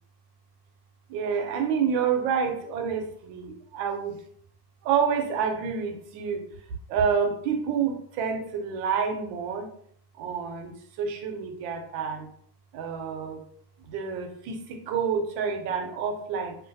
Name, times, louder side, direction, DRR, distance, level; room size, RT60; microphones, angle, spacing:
voice 1, 1.1-4.2 4.8-6.4 6.9-9.7 10.2-12.3 12.7-13.4 13.8-16.6, right 6 dB, 85° right, 5 dB, 1.3 m, -28 dB
3.1 x 2.8 x 2.6 m, 0.65 s
omnidirectional pair, 2.0 m